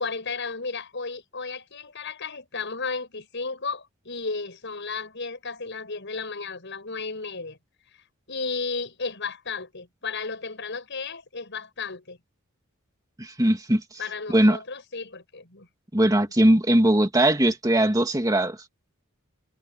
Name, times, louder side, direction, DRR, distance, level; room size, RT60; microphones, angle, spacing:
voice 1, 0.0-7.6 8.3-12.2 14.0-15.7 16.7-16.8, left 4 dB, 60° left, 6.7 m, -33 dB
voice 2, 13.2-13.8 14.3-14.6 15.9-18.6, right 1 dB, 15° right, 2.2 m, -20 dB
head